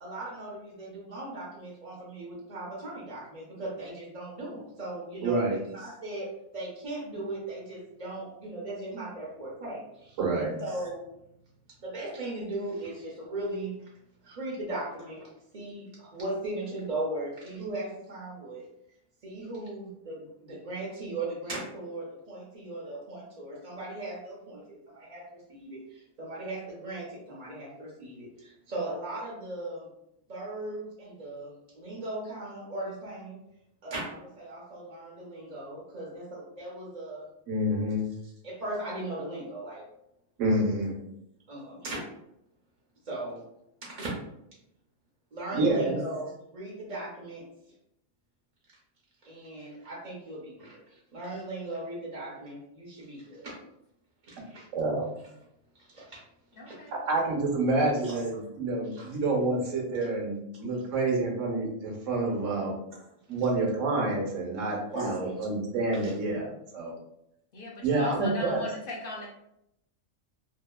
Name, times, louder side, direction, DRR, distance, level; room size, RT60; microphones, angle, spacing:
voice 1, 0.0-11.1 11.8-13.9 14.2-18.7 19.2-29.9 30.3-33.4 33.8-37.3 38.4-39.8 41.5-42.0 43.0-43.4 44.0-44.1 45.3-47.4 49.2-53.5 54.2-54.6 55.8-56.2 56.7-56.8 58.0-58.2 58.9-59.1 63.3-63.4 64.9-65.5 65.9-66.1, right 2 dB, 45° right, -5 dB, 0.6 m, -38 dB
voice 2, 5.2-5.6 10.2-10.6 37.5-38.1 40.4-41.0 45.5-46.0 54.4-54.5 54.7-55.0 56.9-62.7 63.3-66.9 67.8-68.6, right 2 dB, 75° right, 0 dB, 1.0 m, -28 dB
voice 3, 56.6-57.0 67.5-69.3, left 2 dB, 60° left, -2 dB, 0.6 m, -39 dB
2.7 x 2.3 x 2.2 m, 0.80 s
omnidirectional pair, 1.4 m